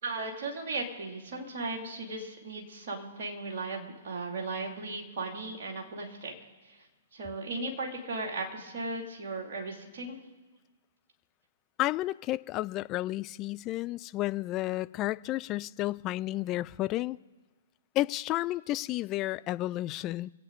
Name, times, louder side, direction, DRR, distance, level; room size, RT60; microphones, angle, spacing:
voice 1, 0.0-6.3 7.1-10.2, right 3 dB, 50° right, 0 dB, 2.9 m, -36 dB
voice 2, 11.8-17.2 18.0-20.3, left 16 dB, 25° left, 16 dB, 0.3 m, -31 dB
25.5 x 8.7 x 4.1 m, 1.2 s
figure-of-eight pair, 120°, 0 cm